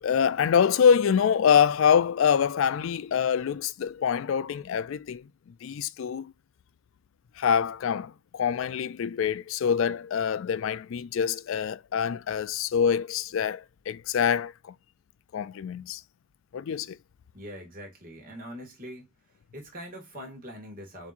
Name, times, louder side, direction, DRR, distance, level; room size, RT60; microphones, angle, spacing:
voice 1, 0.0-5.3 5.6-6.3 7.4-14.7 15.3-16.0 16.5-17.0, left 7 dB, 65° left, 0.3 m, -25 dB
voice 2, 17.3-19.1 19.5-21.1, equal, 40° right, 2.0 m, -42 dB
7.0 x 3.0 x 2.5 m
head